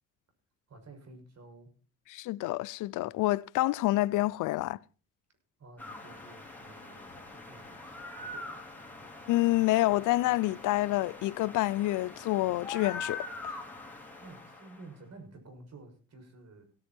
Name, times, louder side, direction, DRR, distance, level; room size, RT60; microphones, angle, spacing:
voice 1, 0.7-1.7 5.6-8.6 14.1-16.7, right 2 dB, 55° right, 6.6 m, -52 dB
voice 2, 2.1-4.8 9.3-13.2, left 17 dB, 85° left, 0.6 m, -28 dB
sound 1, 5.8-14.9, left 3 dB, 5° left, 4.2 m, -43 dB
17.0 x 10.0 x 4.4 m
cardioid pair, 90°, 30 cm